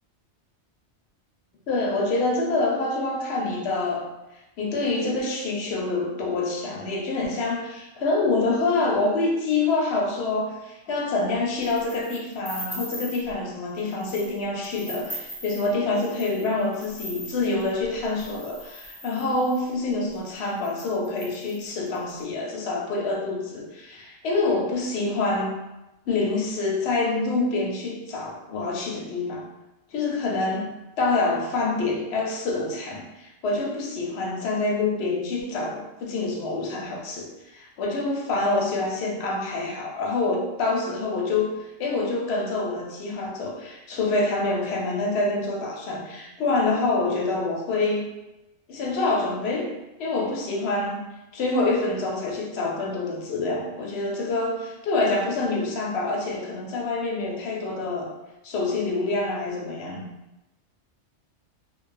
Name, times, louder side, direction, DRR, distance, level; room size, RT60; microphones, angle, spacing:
voice 1, 1.7-4.1 4.6-25.5 26.1-29.5 29.9-30.7 31.0-48.1 48.7-49.7 50.0-51.1 51.3-58.1 58.4-60.1, left 3 dB, 70° left, -1 dB, 0.8 m, -26 dB
sound 1, 11.6-13.3 13.8-14.3 14.6-19.7 20.3-20.4 20.6-22.1, equal, ahead, 0.3 m, -40 dB
2.4 x 2.3 x 2.4 m, 1.0 s
omnidirectional pair, 1.2 m